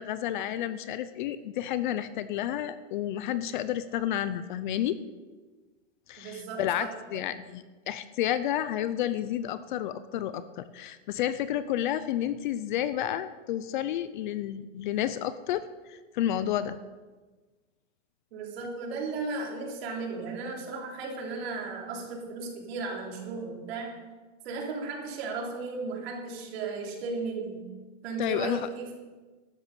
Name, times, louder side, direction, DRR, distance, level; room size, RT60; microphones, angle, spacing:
voice 1, 0.0-5.0 6.1-16.8 28.2-28.7, left 11 dB, 40° left, 14 dB, 0.5 m, -31 dB
voice 2, 6.2-7.2 18.3-24.0 24.4-27.7 28.0-28.9, right 4 dB, 55° right, 0 dB, 3.5 m, -35 dB
12.5 x 8.9 x 6.7 m, 1.3 s
supercardioid pair, 160°, 37 cm